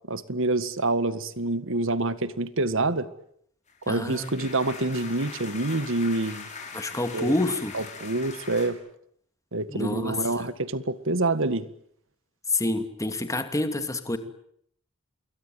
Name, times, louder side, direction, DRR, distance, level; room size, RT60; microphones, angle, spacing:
voice 1, 0.1-3.1 3.9-6.5 7.1-7.3 7.7-8.8 9.5-11.7, right 2 dB, 60° right, 14 dB, 1.8 m, -27 dB
sound 1, 3.7-8.7, left 5 dB, 35° left, 6.6 m, -41 dB
voice 2, 3.9-4.3 6.7-7.7 9.7-10.5 12.5-14.2, left 2 dB, 15° left, 8 dB, 2.6 m, -28 dB
28.0 x 22.0 x 9.2 m, 0.68 s
head